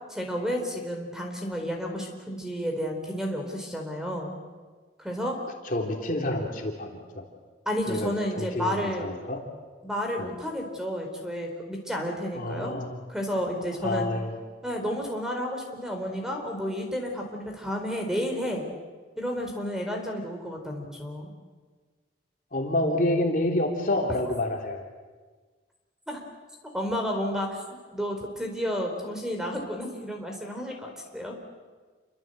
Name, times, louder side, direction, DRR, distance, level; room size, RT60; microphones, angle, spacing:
voice 1, 0.1-4.3 5.0-5.4 7.7-9.0 9.8-12.7 13.1-14.1 14.6-18.6 19.2-21.3 26.1-26.2 26.7-27.6 27.9-31.4, equal, 5° right, 3 dB, 4.3 m, -31 dB
voice 2, 5.7-7.2 7.9-9.4 10.2-10.3 12.4-13.0 13.8-14.4 22.5-24.8, left 1 dB, 45° left, 1 dB, 3.4 m, -28 dB
28.5 x 24.5 x 8.0 m, 1.4 s
head